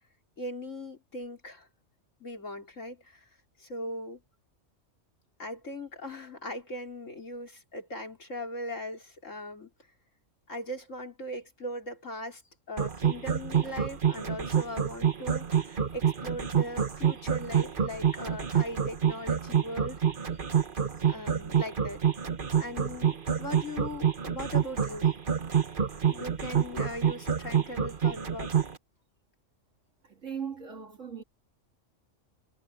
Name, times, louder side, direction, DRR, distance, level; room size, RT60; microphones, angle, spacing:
voice 1, 0.4-1.7 2.2-3.3 3.6-4.2 5.4-9.7 10.5-12.4 12.7-20.0 21.1-22.0 22.6-25.1 26.1-28.5, left 1 dB, 90° left, 4.2 m, -39 dB
sound 1, 12.8-28.7, right 8 dB, 45° right, 1.4 m, -27 dB
voice 2, 30.0-31.2, right 7 dB, 85° right, 3.1 m, -38 dB
omnidirectional pair, 1.3 m